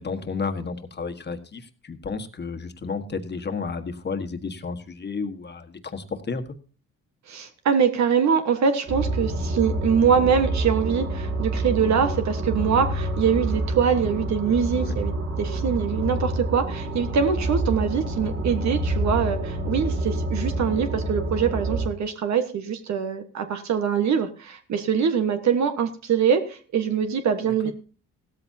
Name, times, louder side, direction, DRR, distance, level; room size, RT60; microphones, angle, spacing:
voice 1, 0.0-6.5 14.7-15.0 27.6-27.7, left 4 dB, 35° left, 7 dB, 1.5 m, -32 dB
voice 2, 7.3-27.7, right 7 dB, 65° right, 7 dB, 1.4 m, -23 dB
sound 1, 8.9-21.9, right 1 dB, 45° right, 3.5 m, -27 dB
16.0 x 13.5 x 2.8 m, 0.38 s
cardioid pair, 90°, 30 cm